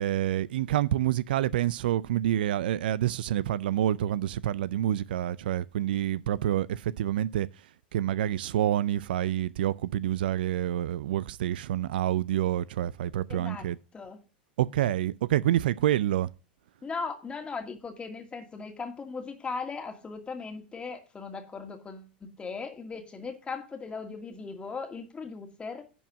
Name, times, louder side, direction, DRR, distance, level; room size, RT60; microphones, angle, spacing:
voice 1, 0.0-7.5 7.9-13.8 14.6-16.3, right 12 dB, 70° right, 0.4 m, -27 dB
voice 2, 13.3-13.7 13.9-14.2 16.8-25.8, left 4 dB, 20° left, 2.1 m, -38 dB
10.5 x 4.6 x 6.0 m
hypercardioid pair, 95°, 5 cm